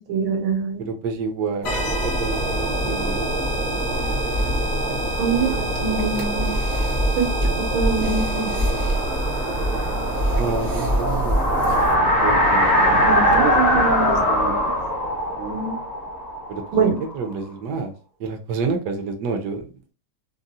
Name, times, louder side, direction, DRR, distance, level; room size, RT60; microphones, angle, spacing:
voice 1, 0.0-0.8 5.2-5.5 5.8-6.5 7.2-7.3 7.7-8.6 13.0-14.7 15.4-15.7 16.7-17.0, right 5 dB, 85° right, 1 dB, 1.7 m, -24 dB
voice 2, 0.8-1.7 2.0-3.4 10.4-11.5 12.2-13.6 16.5-17.9 18.2-19.7, right 4 dB, 70° right, 4 dB, 1.1 m, -29 dB
sound 1, 1.6-11.0, equal, 70° left, 0.6 m, -32 dB
sound 2, 1.6-12.0, right 1 dB, 50° right, 0.5 m, -24 dB
sound 3, 8.3-17.1, equal, 30° left, 0.7 m, -21 dB
3.7 x 2.0 x 2.6 m, 0.36 s
omnidirectional pair, 2.2 m